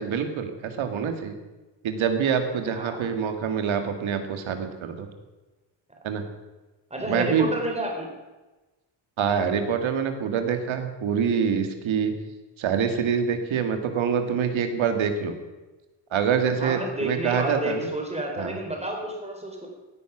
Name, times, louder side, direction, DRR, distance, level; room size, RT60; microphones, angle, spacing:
voice 1, 0.0-1.3 1.8-5.1 6.0-6.2 7.0-7.5 9.2-12.1 12.6-15.4 16.1-17.9 18.4-18.6, right 7 dB, 85° right, 7 dB, 2.0 m, -25 dB
voice 2, 2.6-3.0 6.9-8.1 16.6-19.7, right 1 dB, 15° right, 1 dB, 3.5 m, -30 dB
16.5 x 9.7 x 6.1 m, 1.1 s
cardioid pair, 130°, 46 cm